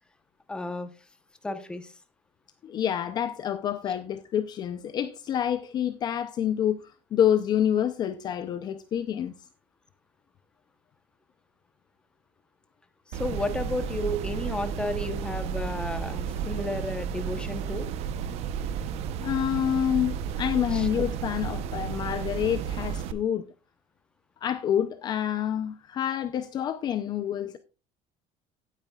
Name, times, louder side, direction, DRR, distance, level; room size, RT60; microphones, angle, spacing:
voice 1, 0.5-0.9 1.4-1.9 13.1-17.9 20.7-20.9, left 1 dB, 5° left, 0.9 m, -32 dB
voice 2, 2.6-9.4 19.2-23.4 24.4-27.6, left 9 dB, 30° left, 0.6 m, -27 dB
sound 1, 13.1-23.1, right 8 dB, 50° right, 0.8 m, -32 dB
17.5 x 9.1 x 2.4 m
cardioid pair, 180°, 14 cm